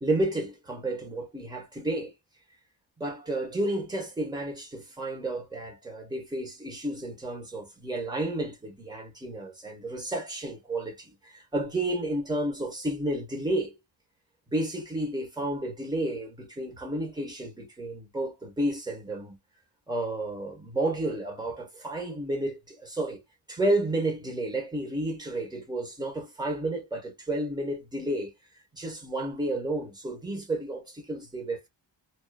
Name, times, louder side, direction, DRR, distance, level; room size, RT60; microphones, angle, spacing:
voice 1, 0.0-2.1 3.0-13.7 14.5-19.4 19.9-23.2 23.5-28.3 28.7-31.7, right 1 dB, 10° right, 1.4 m, -31 dB
2.9 x 2.3 x 2.4 m
wide cardioid pair, 85°, 46 cm